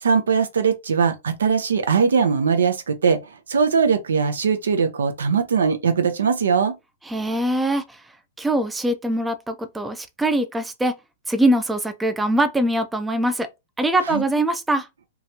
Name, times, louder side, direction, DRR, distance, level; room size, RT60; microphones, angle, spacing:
voice 1, 0.0-3.2 3.5-6.7 14.1-14.2, right 6 dB, 85° right, 0.6 m, -20 dB
voice 2, 7.1-8.0 8.4-10.9 11.3-13.5 13.8-14.9, right 1 dB, 10° right, 0.4 m, -22 dB
2.9 x 2.3 x 2.7 m
hypercardioid pair, 130°, 0 cm